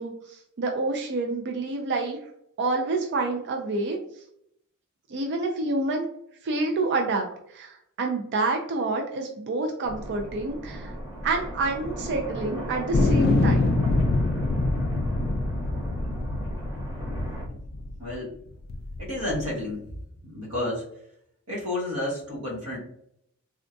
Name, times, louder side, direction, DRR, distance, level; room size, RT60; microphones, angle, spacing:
voice 1, 0.0-2.2 2.6-4.0 5.1-6.1 6.4-10.9 11.2-13.8, right 3 dB, 55° right, 2 dB, 0.4 m, -28 dB
sound 1, 9.8-17.4, right 1 dB, 15° right, 0.9 m, -36 dB
sound 2, 12.9-18.1 18.7-19.5, left 2 dB, 45° left, 0.3 m, -25 dB
voice 2, 18.0-18.3 19.0-19.8 20.3-20.8 21.5-22.8, left 1 dB, 80° right, -4 dB, 1.4 m, -30 dB
3.6 x 2.2 x 2.5 m, 0.73 s
head